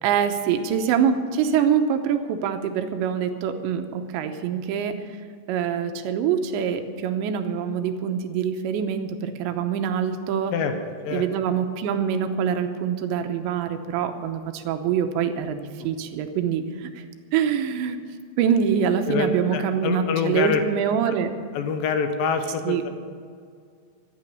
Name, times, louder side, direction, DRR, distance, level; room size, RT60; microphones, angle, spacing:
voice 1, 0.0-5.0 5.5-10.5 11.1-17.0 17.3-18.0 18.4-21.3 22.7-22.8, right 7 dB, 85° right, 7 dB, 3.1 m, -25 dB
voice 2, 19.1-20.6 21.1-21.2 21.5-22.9, left 6 dB, 70° left, 7 dB, 2.2 m, -26 dB
14.0 x 9.2 x 8.3 m, 2.1 s
omnidirectional pair, 5.3 m